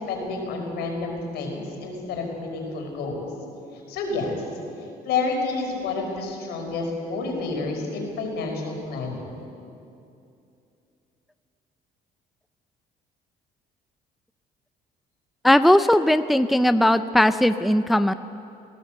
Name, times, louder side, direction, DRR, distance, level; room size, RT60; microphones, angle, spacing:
voice 1, 0.1-3.3 3.9-4.4 5.0-9.4, left 3 dB, 80° left, 1 dB, 5.2 m, -29 dB
voice 2, 15.4-18.1, left 1 dB, ahead, 11 dB, 0.5 m, -18 dB
19.5 x 17.5 x 8.0 m, 2.7 s
cardioid pair, 110°, 17 cm